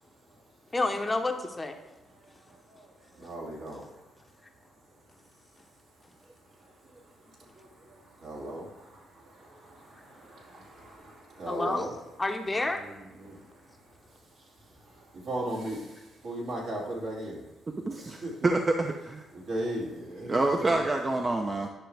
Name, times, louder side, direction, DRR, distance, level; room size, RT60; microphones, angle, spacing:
voice 1, 0.7-1.8 11.5-11.9 12.2-12.8, left 2 dB, 20° left, 5 dB, 0.8 m, -29 dB
voice 2, 2.7-3.9 6.6-7.0 7.3-11.9 12.7-13.6 14.8-17.4 18.2-18.3 19.3-20.9, right 1 dB, 70° right, -4 dB, 2.8 m, -38 dB
voice 3, 18.4-19.3 20.3-21.7, right 2 dB, 25° right, 4 dB, 0.6 m, -26 dB
10.0 x 5.9 x 3.4 m, 1.1 s
cardioid pair, 90°, 0 cm